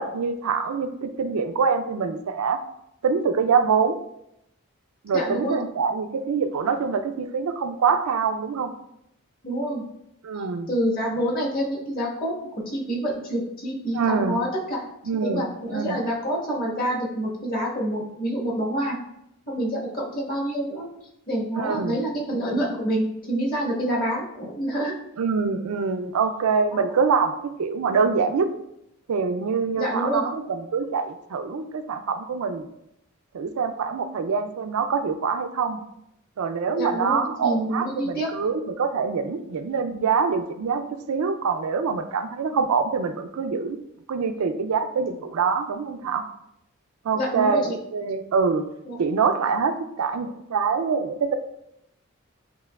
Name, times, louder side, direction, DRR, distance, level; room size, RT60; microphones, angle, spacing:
voice 1, 0.0-2.6 3.0-4.0 5.0-8.7 10.2-10.7 13.9-14.4 15.1-16.0 21.6-22.0 25.2-27.3 27.6-28.5 29.1-32.7 33.3-35.8 36.4-43.8 44.1-46.2 47.0-48.6 49.0-51.3, right 5 dB, 85° right, 8 dB, 0.4 m, -25 dB
voice 2, 5.1-5.6 9.4-9.8 10.7-12.3 12.7-14.8 15.2-19.0 19.5-20.9 21.3-24.9 26.7-26.9 29.7-30.2 36.7-38.3 47.1-47.7 48.8-49.0, right 1 dB, 40° left, -4 dB, 1.3 m, -27 dB
8.0 x 2.9 x 2.3 m, 0.81 s
head